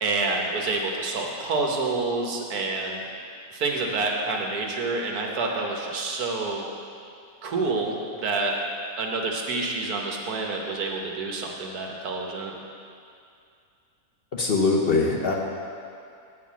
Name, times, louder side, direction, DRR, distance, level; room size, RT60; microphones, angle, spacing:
voice 1, 0.0-3.0 3.5-6.6 7.4-8.5 9.0-12.5, right 3 dB, 90° right, 0 dB, 1.6 m, -28 dB
voice 2, 14.3-15.3, left 3 dB, 50° left, -1 dB, 0.9 m, -22 dB
8.9 x 4.7 x 7.4 m, 2.4 s
omnidirectional pair, 1.6 m